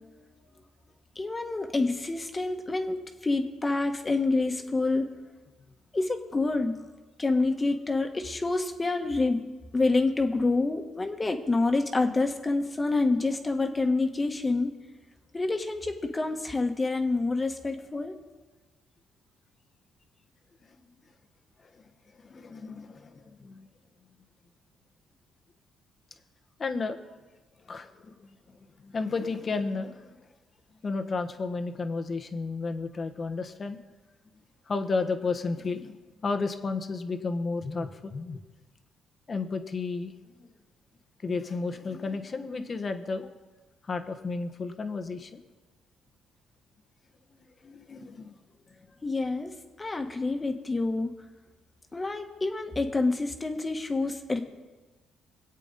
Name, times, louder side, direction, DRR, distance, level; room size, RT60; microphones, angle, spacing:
voice 1, 1.1-5.1 5.9-6.7 7.2-9.4 9.7-14.7 15.3-18.2 49.0-49.5 49.8-51.1 51.9-54.4, left 3 dB, 25° left, 5 dB, 1.6 m, -27 dB
voice 2, 20.6-21.0 21.7-21.9 22.1-23.7 26.6-27.0 27.7-28.4 28.8-30.2 30.8-33.8 34.7-36.0 36.2-38.4 39.3-40.1 40.4-40.5 41.2-43.3 43.8-45.4 47.3-48.4, left 4 dB, 40° left, 8 dB, 1.3 m, -33 dB
23.0 x 8.3 x 4.2 m, 1.2 s
supercardioid pair, 70°, 0 cm